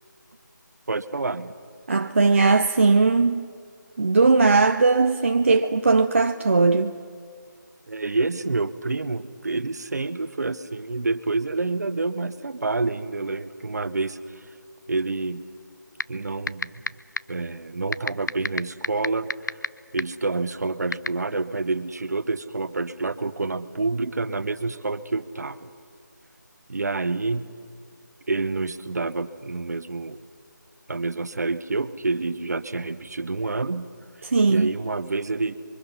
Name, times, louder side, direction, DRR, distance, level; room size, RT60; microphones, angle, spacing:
voice 1, 0.9-1.5 7.9-14.2 14.9-15.4 16.1-16.9 17.3-19.3 19.9-25.7 26.7-27.5 28.3-30.2 30.9-33.9 34.5-35.6, right 3 dB, 60° right, 1.0 m, -28 dB
voice 2, 1.9-3.5 4.0-6.9 34.2-34.7, right 3 dB, 40° right, 0.6 m, -19 dB
sound 1, 16.0-16.1 16.5-16.9 17.2-17.3 17.9-19.7 20.0-20.1 20.9-21.1, left 4 dB, 70° left, 0.5 m, -23 dB
29.0 x 23.5 x 5.6 m
figure-of-eight pair, 170°, 10 cm